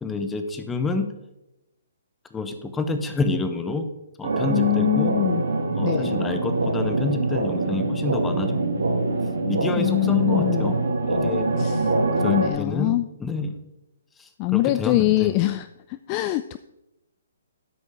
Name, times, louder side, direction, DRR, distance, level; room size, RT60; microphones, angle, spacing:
voice 1, 0.0-1.1 2.3-3.8 4.2-5.1 5.7-8.6 9.4-11.4 12.2-12.9 13.2-13.6 14.2-15.4, left 3 dB, 10° left, 7 dB, 1.0 m, -28 dB
sound 1, 4.2-12.5, right 2 dB, 80° right, 1.9 m, -24 dB
voice 2, 4.5-5.4 5.8-6.2 9.8-10.7 11.6-11.8 12.2-13.1 14.4-15.7 16.1-16.6, left 18 dB, 30° left, 13 dB, 0.3 m, -23 dB
12.5 x 5.2 x 4.9 m, 0.93 s
hypercardioid pair, 140°, 0 cm